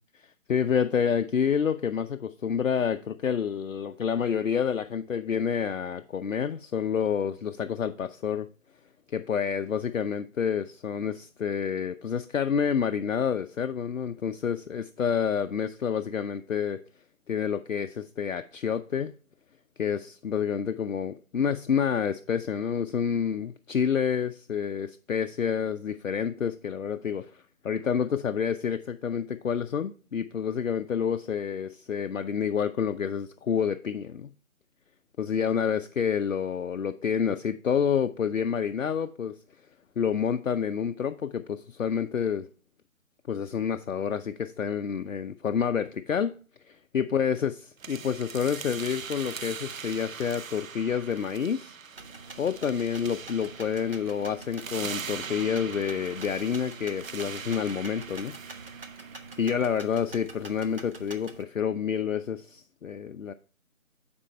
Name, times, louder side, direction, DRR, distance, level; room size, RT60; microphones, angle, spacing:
voice 1, 0.1-8.5 9.1-16.8 17.3-19.1 19.8-34.3 35.2-39.4 40.0-42.5 43.3-46.3 46.7-47.6 47.9-51.8 52.4-58.4 59.4-63.3, left 7 dB, 65° left, 0.5 m, -28 dB
sound 1, 47.8-59.7, right 6 dB, 70° right, 0.6 m, -41 dB
sound 2, 52.0-61.4, right 3 dB, 40° right, 0.9 m, -46 dB
8.7 x 4.3 x 4.4 m
figure-of-eight pair, 160°, 42 cm